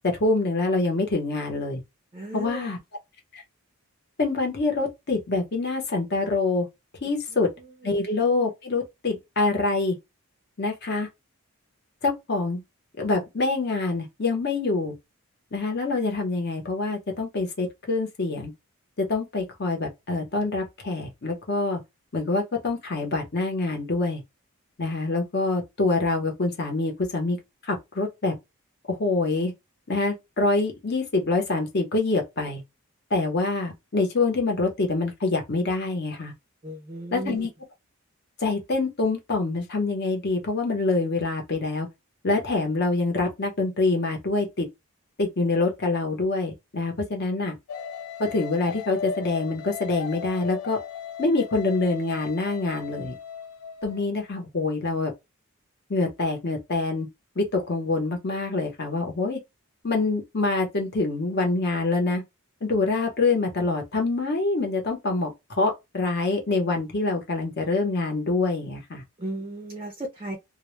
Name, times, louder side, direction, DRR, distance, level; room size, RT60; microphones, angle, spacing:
voice 1, 0.1-1.8 2.3-2.8 3.3-3.4 4.2-6.7 7.0-7.5 7.8-10.0 10.6-11.1 12.0-12.6 13.0-14.9 15.5-18.5 19.0-21.8 22.1-24.2 24.8-27.4 27.6-28.3 29.0-29.5 29.9-32.6 33.1-36.3 37.1-37.5 38.4-41.9 42.2-44.7 45.2-47.5 48.2-50.8 51.2-53.1 53.8-55.1 55.9-57.1 57.4-59.4 59.8-62.2 62.6-69.0, left 3 dB, 50° left, 0.8 m, -25 dB
voice 2, 2.1-2.7 7.3-7.9 36.6-37.5 69.2-70.4, right 1 dB, 25° right, 0.4 m, -36 dB
sound 1, 47.7-54.0, left 7 dB, 80° left, 0.3 m, -37 dB
2.1 x 2.0 x 3.0 m
head